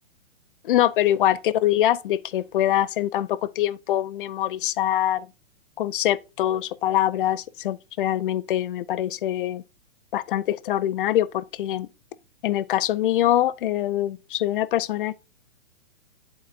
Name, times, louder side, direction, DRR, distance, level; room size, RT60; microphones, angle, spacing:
voice 1, 0.6-5.3 5.8-9.6 10.1-11.9 12.4-15.2, left 12 dB, 45° left, 0.5 m, -24 dB
11.5 x 3.9 x 2.5 m
hypercardioid pair, 140°, 37 cm